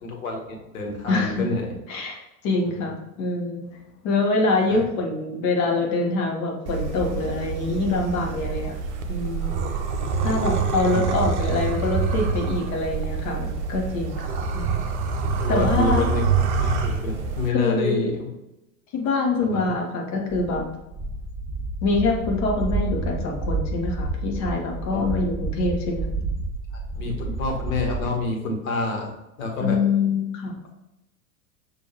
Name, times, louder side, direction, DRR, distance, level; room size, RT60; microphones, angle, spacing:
voice 1, 0.0-1.8 2.6-2.9 4.7-4.8 15.4-16.2 16.6-18.3 19.4-19.7 24.9-25.0 26.7-29.1 29.4-29.8, left 3 dB, 65° left, 0 dB, 1.4 m, -28 dB
voice 2, 1.1-1.4 1.9-3.6 4.0-8.7 9.1-9.6 10.2-14.7 15.5-16.1 17.5-18.1 18.9-20.7 21.8-26.1 29.6-30.5, left 3 dB, 40° left, 1 dB, 1.2 m, -25 dB
sound 1, 6.7-17.5, right 5 dB, 50° right, 0.7 m, -26 dB
sound 2, 20.3-28.1, right 2 dB, 5° right, 1.3 m, -30 dB
6.2 x 2.7 x 2.9 m, 0.92 s
figure-of-eight pair, 85°, 45 cm